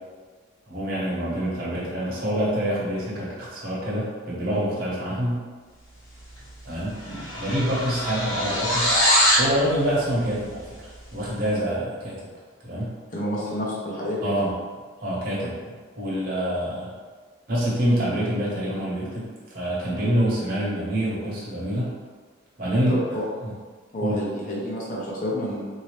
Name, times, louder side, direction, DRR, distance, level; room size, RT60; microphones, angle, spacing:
voice 1, 0.7-5.4 6.6-6.9 7.4-9.0 9.3-12.2 12.6-12.9 14.2-14.5 15.0-15.6 16.0-16.9 17.5-19.3 19.5-21.9 22.6-23.0 23.4-23.5 24.0-24.2, equal, 45° right, -7 dB, 1.2 m, -26 dB
sound 1, 6.3-6.6 6.8-9.5, equal, 80° left, 0.9 m, -22 dB
voice 2, 13.1-14.3 22.9-23.2 23.9-25.6, left 1 dB, 40° left, -5 dB, 0.7 m, -29 dB
4.0 x 2.8 x 3.2 m, 1.5 s
head